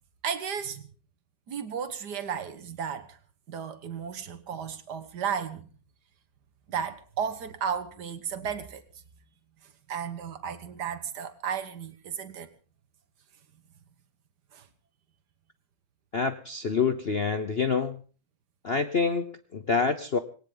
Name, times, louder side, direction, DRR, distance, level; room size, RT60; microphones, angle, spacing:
voice 1, 0.2-0.9 1.5-3.2 3.5-5.7 6.7-8.8 9.9-12.5 14.5-14.7, right 7 dB, 55° right, 1.9 m, -34 dB
voice 2, 16.1-18.0 18.6-20.2, left 5 dB, 55° left, 0.6 m, -27 dB
19.5 x 18.5 x 3.9 m
omnidirectional pair, 2.2 m